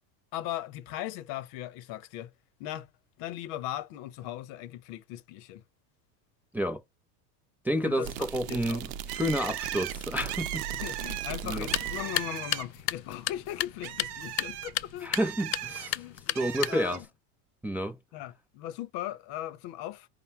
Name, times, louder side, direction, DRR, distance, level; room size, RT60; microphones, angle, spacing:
voice 1, 0.3-2.3 2.6-2.9 3.2-5.6 7.8-8.8 10.7-15.2 15.9-17.0 18.1-20.1, left 13 dB, 55° left, 0.9 m, -38 dB
voice 2, 7.6-10.7 11.4-11.7 15.0-16.0 16.3-17.0 17.6-18.0, equal, 5° right, 0.5 m, -30 dB
sound 1, 8.0-12.3, right 9 dB, 80° right, 0.6 m, -38 dB
Bird, 9.1-12.9 13.3-15.9 16.4-17.0, right 13 dB, 55° right, 0.8 m, -38 dB
sound 2, 11.5-17.1, left 15 dB, 90° left, 0.6 m, -34 dB
5.2 x 2.2 x 4.5 m
hypercardioid pair, 95°, 48 cm